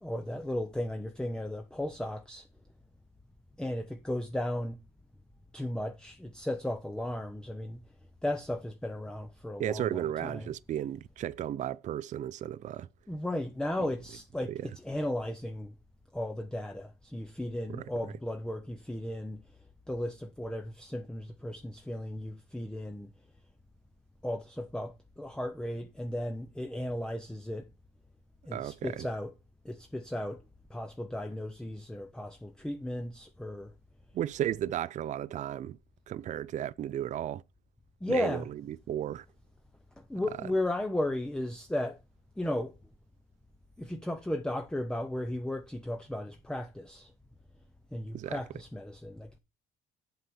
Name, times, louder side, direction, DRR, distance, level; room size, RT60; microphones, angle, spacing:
voice 1, 0.0-2.5 3.6-4.8 5.5-7.8 8.2-10.5 13.1-15.7 16.1-19.4 19.9-23.1 24.2-27.6 28.5-29.3 29.6-30.4 30.7-33.7 38.0-38.5 40.1-42.0 42.4-42.8 43.8-47.1 47.9-49.4, left 1 dB, 5° left, 0.7 m, -35 dB
voice 2, 9.6-12.9 14.5-14.7 17.7-17.9 28.5-29.1 34.1-35.8 36.1-37.4 38.1-39.3 40.4-40.5 48.1-48.4, right 11 dB, 45° right, 0.4 m, -34 dB
7.8 x 4.2 x 6.9 m
cardioid pair, 110°, 17 cm